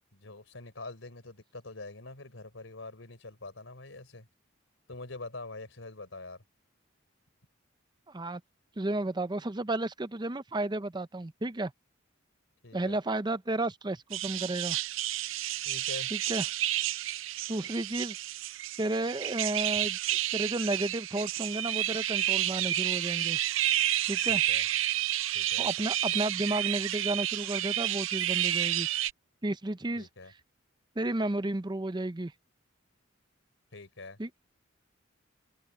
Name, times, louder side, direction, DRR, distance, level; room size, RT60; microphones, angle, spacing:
voice 1, 0.1-4.3 4.9-6.4 12.6-13.0 15.6-16.1 24.3-24.7 25.3-25.7 30.0-30.3 33.7-34.2, left 2 dB, 75° left, 3.8 m, -44 dB
voice 2, 8.1-8.4 8.8-11.7 12.7-14.8 16.1-16.4 17.5-18.2 18.8-20.0 20.3-23.4 24.1-24.4 25.6-28.9 29.4-30.1 31.0-32.3 34.2-34.3, right 2 dB, 20° right, 0.6 m, -32 dB
sound 1, 14.1-29.1, right 13 dB, 75° right, 0.6 m, -30 dB
open air
head